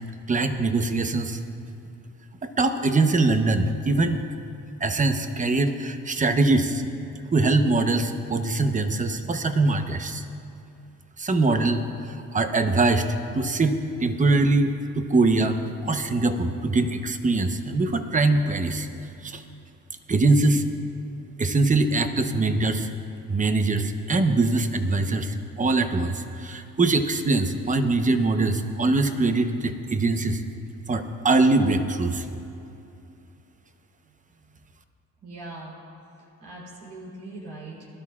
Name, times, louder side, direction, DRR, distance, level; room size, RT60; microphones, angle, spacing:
voice 1, 0.3-1.4 2.4-4.2 4.8-6.8 7.3-10.2 11.2-13.1 13.3-18.9 19.2-19.4 20.1-20.6 21.4-22.9 23.3-30.4 30.9-32.2, right 3 dB, 25° right, 7 dB, 0.9 m, -23 dB
voice 2, 34.0-34.4 35.2-35.7 36.4-37.9, right 2 dB, 80° right, -4 dB, 3.5 m, -41 dB
21.5 x 12.5 x 2.4 m, 2.7 s
cardioid pair, 90°, 30 cm